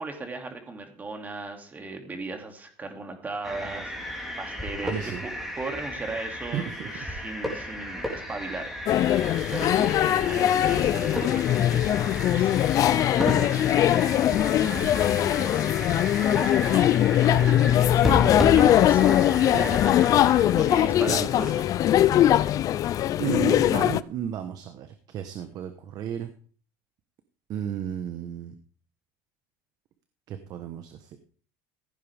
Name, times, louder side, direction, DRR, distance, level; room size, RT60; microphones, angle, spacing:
voice 1, 0.0-5.3 5.6-8.7 9.5-13.2 13.5-15.7 16.3-16.9 17.4-18.0 18.6-21.7, right 3 dB, 20° right, 4 dB, 2.5 m, -38 dB
sound 1, 3.4-21.1, equal, ahead, 3.6 m, -34 dB
voice 2, 4.8-5.2 6.5-6.9 17.3-17.5 19.5-19.7 21.1-21.5 23.2-26.3 27.5-28.5 30.3-31.2, right 9 dB, 45° right, 8 dB, 1.1 m, -33 dB
sound 2, 8.9-24.0, left 12 dB, 40° left, 0.5 m, -21 dB
16.0 x 9.3 x 3.5 m, 0.44 s
supercardioid pair, 125°, 9 cm